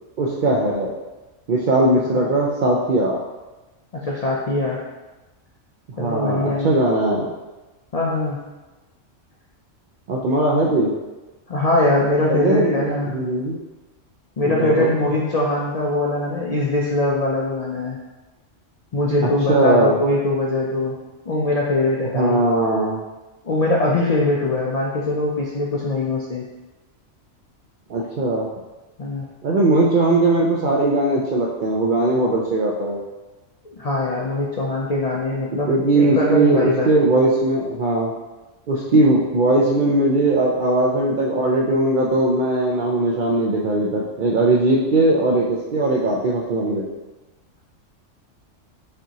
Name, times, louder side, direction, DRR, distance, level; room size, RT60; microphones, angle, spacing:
voice 1, 0.2-0.9 1.5-3.2 6.0-7.3 10.1-10.9 12.3-12.8 13.1-13.6 14.4-14.9 19.5-20.0 22.1-23.0 27.9-28.4 29.4-33.0 35.7-38.1 38.7-46.9, right 2 dB, 65° right, -3 dB, 0.5 m, -19 dB
voice 2, 3.9-4.8 6.0-6.7 7.9-8.4 11.5-13.1 14.4-18.0 18.9-21.0 21.2-22.4 23.4-26.5 29.0-29.3 33.6-37.2, left 2 dB, 60° left, -4 dB, 0.4 m, -22 dB
5.2 x 2.8 x 2.8 m, 1.1 s
omnidirectional pair, 1.3 m